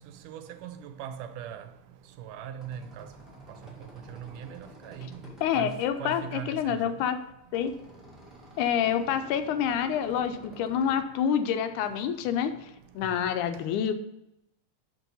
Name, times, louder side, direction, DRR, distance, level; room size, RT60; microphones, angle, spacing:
voice 1, 0.2-1.6 2.2-3.1 4.1-4.6 4.8-5.2 5.5-7.0 13.1-13.2, right 9 dB, 85° right, 2.2 m, -40 dB
sound 1, 2.4-11.0, equal, ahead, 0.8 m, -51 dB
voice 2, 5.4-7.2 7.5-7.7 8.6-12.7 13.0-13.9, left 8 dB, 80° left, 2.0 m, -27 dB
6.2 x 6.1 x 5.4 m
omnidirectional pair, 3.7 m